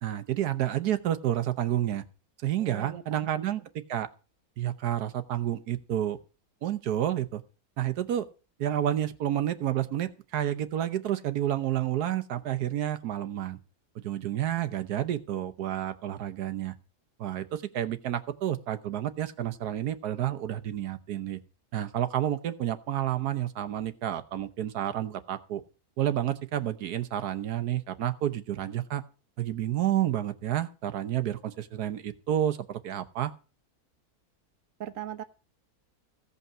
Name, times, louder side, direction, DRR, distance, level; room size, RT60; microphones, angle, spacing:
voice 1, 0.0-2.0 2.4-3.6 3.9-4.1 4.6-6.2 6.6-7.4 7.8-8.3 8.6-13.6 13.9-16.7 17.2-21.4 21.7-25.6 26.0-29.0 29.4-33.3, right 11 dB, 85° right, 10 dB, 1.4 m, -30 dB
voice 2, 2.6-3.4 34.8-35.2, right 10 dB, 60° right, 9 dB, 1.4 m, -39 dB
16.0 x 5.5 x 7.4 m, 0.35 s
omnidirectional pair, 1.6 m